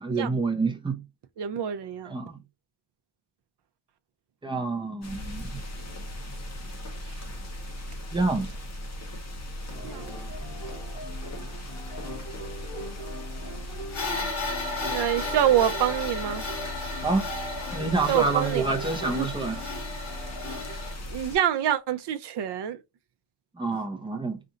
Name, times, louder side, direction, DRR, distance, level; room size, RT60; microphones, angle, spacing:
voice 1, 0.0-1.0 2.1-2.4 4.4-5.6 8.1-8.5 17.0-17.3 17.7-19.6 23.6-24.4, right 3 dB, 10° right, 0.7 m, -27 dB
voice 2, 1.4-2.1 7.0-7.3 9.8-10.1 14.9-16.4 18.1-19.3 21.1-22.8, right 10 dB, 60° right, 0.6 m, -26 dB
sound 1, 5.0-21.4, left 1 dB, 35° left, 0.9 m, -38 dB
sound 2, 9.7-20.8, equal, 10° left, 1.6 m, -42 dB
sound 3, 13.9-20.9, left 2 dB, 60° left, 2.1 m, -34 dB
4.3 x 2.5 x 3.8 m
wide cardioid pair, 170°, 47 cm